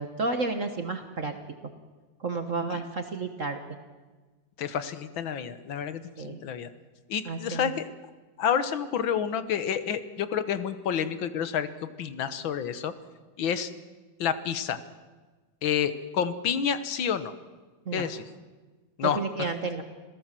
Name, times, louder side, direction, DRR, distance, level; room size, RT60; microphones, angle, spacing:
voice 1, 0.0-1.3 2.2-3.6 6.2-6.4 7.2-7.7 17.8-18.1 19.0-19.8, right 3 dB, 45° right, 7 dB, 1.5 m, -31 dB
voice 2, 4.6-6.7 7.1-7.8 8.4-11.7 12.0-12.9 13.4-13.7 14.2-14.8 15.6-17.3 17.9-18.2 19.0-19.2, left 8 dB, 70° left, 12 dB, 1.9 m, -29 dB
27.0 x 17.0 x 7.6 m, 1.3 s
omnidirectional pair, 2.2 m